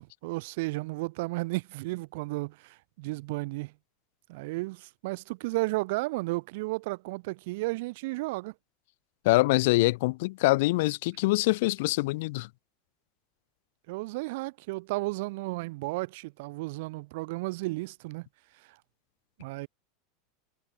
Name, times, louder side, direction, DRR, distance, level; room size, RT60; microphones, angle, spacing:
voice 1, 0.0-3.7 4.3-8.5 13.9-18.3 18.7-18.8 19.4-19.7, right 23 dB, 60° right, 1.2 m, -33 dB
voice 2, 9.2-12.5, left 21 dB, 60° left, 0.6 m, -24 dB
supercardioid pair, 165°, 0 cm